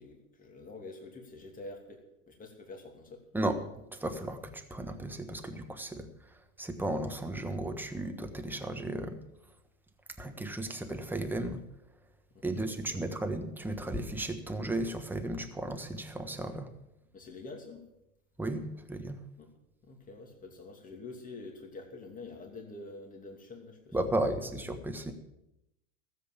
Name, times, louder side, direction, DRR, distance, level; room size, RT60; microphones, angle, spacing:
voice 1, 0.0-3.2 12.3-13.0 17.1-17.9 19.4-19.5 19.8-24.2, left 3 dB, 20° left, 2 dB, 2.7 m, -47 dB
voice 2, 3.9-6.1 6.6-9.2 10.2-11.6 12.4-16.7 18.4-19.2 23.9-25.1, right 1 dB, 5° right, 6 dB, 1.3 m, -34 dB
14.5 x 7.9 x 7.4 m, 0.86 s
hypercardioid pair, 120°, 41 cm